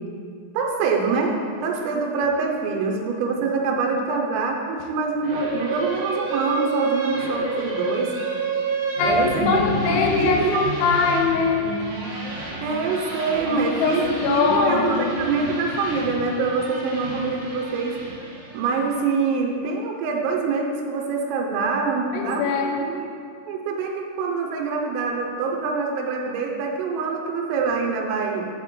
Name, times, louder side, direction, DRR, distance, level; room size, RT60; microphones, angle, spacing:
voice 1, 0.5-8.2 9.0-10.7 12.6-18.0 18.5-23.1 23.5-28.5, right 4 dB, 80° right, 1 dB, 3.3 m, -25 dB
sound 1, 5.2-18.8, right 2 dB, 45° right, 1.9 m, -29 dB
voice 2, 9.5-11.8 13.8-15.1 22.1-22.8, left 5 dB, 85° left, 2 dB, 3.1 m, -22 dB
10.5 x 4.2 x 4.4 m, 2.4 s
omnidirectional pair, 6.0 m